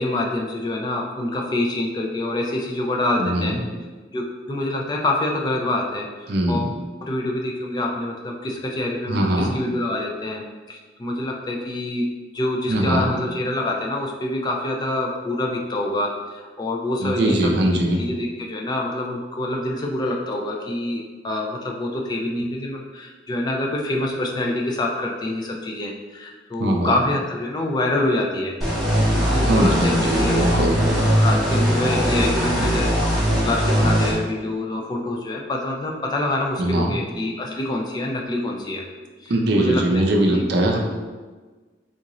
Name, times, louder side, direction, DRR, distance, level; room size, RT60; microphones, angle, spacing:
voice 1, 0.0-3.6 4.1-6.7 7.0-17.5 18.0-28.5 29.1-30.6 31.1-33.0 33.4-38.8 39.2-39.8 40.2-40.4, left 1 dB, 25° left, 0 dB, 0.3 m, -26 dB
voice 2, 3.2-3.6 6.3-6.7 9.1-9.5 12.7-13.1 17.0-18.0 26.6-27.0 29.4-30.7 36.6-37.0 39.3-40.8, right 1 dB, 65° right, 1 dB, 0.5 m, -21 dB
sound 1, 28.6-34.1, equal, ahead, 0.7 m, -20 dB
3.7 x 2.5 x 2.9 m, 1.3 s
head